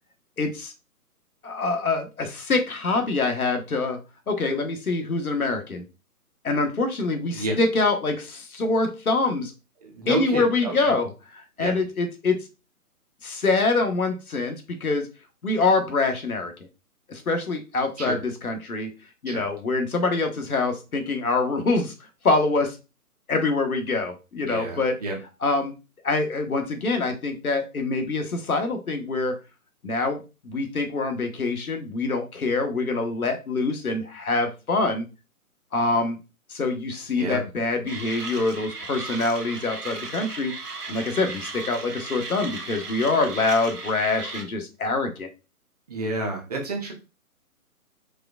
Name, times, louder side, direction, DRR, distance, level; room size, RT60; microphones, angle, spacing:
voice 1, 0.4-0.7 1.4-4.0 4.3-5.8 6.4-9.5 10.1-11.1 11.6-12.4 13.2-15.1 15.4-16.5 17.1-18.9 19.2-21.9 22.2-22.8 23.3-24.9 25.4-25.8 26.0-29.3 29.8-35.1 35.7-36.2 36.5-40.5 40.9-45.3, left 3 dB, 70° left, 5 dB, 1.2 m, -25 dB
voice 2, 9.8-10.9 11.6-11.8 18.0-18.2 19.3-19.4 24.4-25.2 37.2-37.4 45.9-46.9, right 2 dB, 25° right, 1 dB, 0.8 m, -30 dB
Mechanisms, 37.9-44.4, right 3 dB, 85° right, 1.2 m, -36 dB
4.9 x 3.4 x 2.3 m, 0.28 s
figure-of-eight pair, 140°, 45 cm